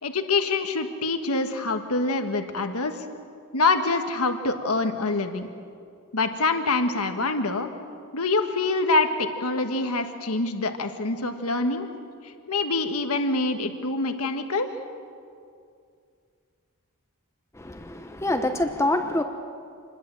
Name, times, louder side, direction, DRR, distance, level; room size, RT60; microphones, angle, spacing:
voice 1, 0.0-3.0 3.5-5.5 6.1-7.7 8.1-11.9 12.2-14.7, left 3 dB, 70° left, 6 dB, 1.6 m, -25 dB
voice 2, 17.5-19.2, left 1 dB, 10° left, 6 dB, 0.9 m, -26 dB
26.5 x 21.0 x 7.7 m, 2.3 s
head